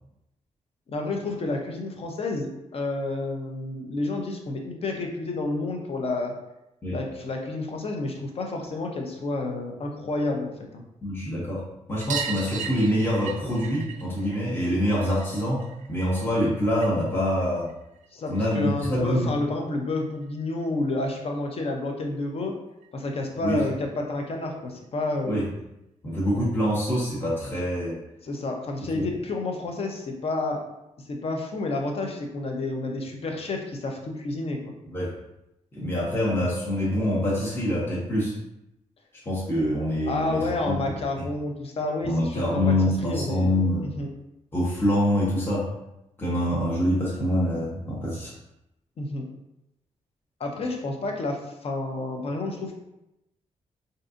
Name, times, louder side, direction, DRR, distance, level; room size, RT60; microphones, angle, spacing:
voice 1, 0.9-6.3 6.9-10.8 18.1-22.6 22.9-25.4 28.2-30.6 31.1-34.7 40.1-42.7 43.0-43.5 43.8-44.1 49.0-49.3 50.4-52.8, left 2 dB, 50° left, 2 dB, 0.6 m, -30 dB
voice 2, 11.0-17.7 18.3-19.3 23.4-23.6 25.3-25.5 26.0-28.0 28.9-29.1 34.9-35.2 35.7-38.3 39.3-40.8 42.0-43.9 44.5-45.7 46.2-48.3, equal, 20° left, -7 dB, 0.8 m, -25 dB
sound 1, 12.0-17.1 17.4-18.5 19.9-20.0 20.2-20.3 20.6-20.7 22.0-22.1 22.4-22.5 22.8-22.9 24.1-24.2 25.0-25.1, right 7 dB, 85° right, 0.4 m, -38 dB
3.7 x 2.7 x 2.4 m, 0.87 s
wide cardioid pair, 115°, 12 cm